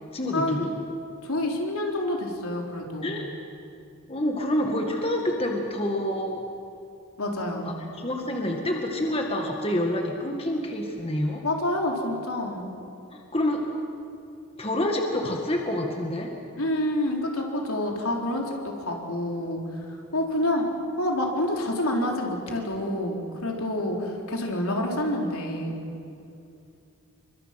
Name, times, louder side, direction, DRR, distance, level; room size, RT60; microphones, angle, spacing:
voice 1, 0.1-0.7 3.0-3.3 4.1-6.4 7.7-11.4 13.1-13.6 14.6-16.3, left 1 dB, 25° left, 1 dB, 1.9 m, -27 dB
voice 2, 1.2-3.2 7.2-7.7 11.4-12.6 16.6-20.6 21.0-25.8, left 1 dB, 80° left, 0 dB, 3.7 m, -28 dB
28.0 x 24.0 x 5.9 m, 2.6 s
head